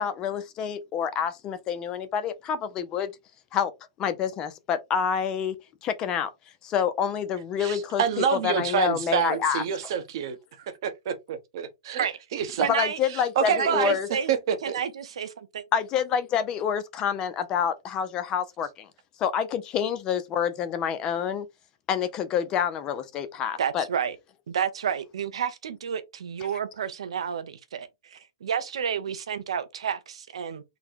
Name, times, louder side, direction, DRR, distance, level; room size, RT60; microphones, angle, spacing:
voice 1, 0.0-3.1 3.5-3.7 4.0-5.5 5.8-6.3 6.6-9.6 12.7-14.1 15.7-18.9 19.2-21.5 21.9-23.8, left 8 dB, 25° left, 0.5 m, -27 dB
voice 2, 7.6-12.7 13.4-14.0 14.3-14.8, right 7 dB, 55° right, 0.9 m, -27 dB
voice 3, 12.6-13.0 13.5-14.3 14.6-15.7 23.6-24.2 24.5-30.6, right 8 dB, 80° right, 0.8 m, -30 dB
3.9 x 2.2 x 4.5 m
hypercardioid pair, 150°, 3 cm